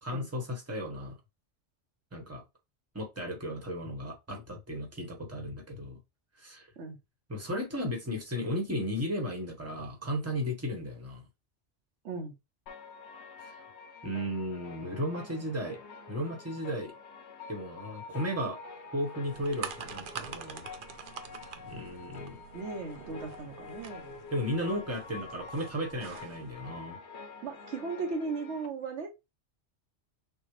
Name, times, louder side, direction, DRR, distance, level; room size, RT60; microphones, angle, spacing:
voice 1, 0.0-1.1 2.1-2.4 2.9-6.0 6.4-6.7 7.3-11.2 13.4-13.5 14.0-15.8 16.1-16.9 17.5-18.6 18.9-20.7 21.7-22.4 24.3-27.0, equal, 15° right, 1.2 m, -35 dB
sound 1, 12.7-28.7, left 4 dB, 65° left, 1.0 m, -47 dB
sound 2, 19.2-26.5, right 7 dB, 55° right, 0.7 m, -45 dB
voice 2, 22.5-24.2 27.4-29.1, right 4 dB, 70° right, 1.1 m, -37 dB
6.3 x 2.4 x 3.2 m
omnidirectional pair, 1.2 m